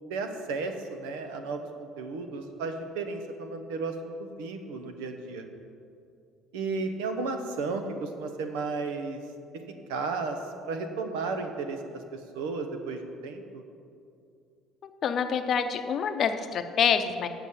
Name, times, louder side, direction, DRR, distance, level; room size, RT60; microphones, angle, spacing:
voice 1, 0.1-1.7 2.0-5.5 6.5-9.2 9.9-10.4 10.6-13.6, right 4 dB, 90° right, 6 dB, 0.8 m, -33 dB
voice 2, 14.8-17.3, left 7 dB, 50° left, 8 dB, 0.6 m, -27 dB
8.1 x 5.9 x 7.1 m, 2.5 s
supercardioid pair, 90°, 0 cm